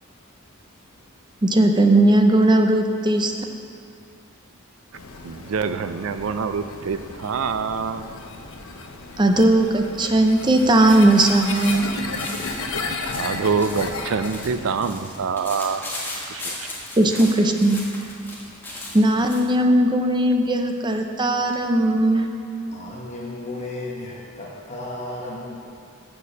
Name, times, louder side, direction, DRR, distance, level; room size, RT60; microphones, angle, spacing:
voice 1, 1.4-3.3 9.2-11.9 17.0-17.8 18.9-22.4, right 1 dB, 20° right, 4 dB, 0.6 m, -18 dB
sound 1, 4.9-14.8, left 3 dB, 70° left, 0.7 m, -34 dB
voice 2, 5.2-8.0 13.2-16.0 16.3-16.7, right 5 dB, 70° right, 11 dB, 0.4 m, -25 dB
sound 2, 10.2-19.5, left 2 dB, 10° left, 1.4 m, -38 dB
voice 3, 22.7-25.6, left 2 dB, 30° left, -4 dB, 1.2 m, -34 dB
6.8 x 6.7 x 6.5 m, 2.3 s
head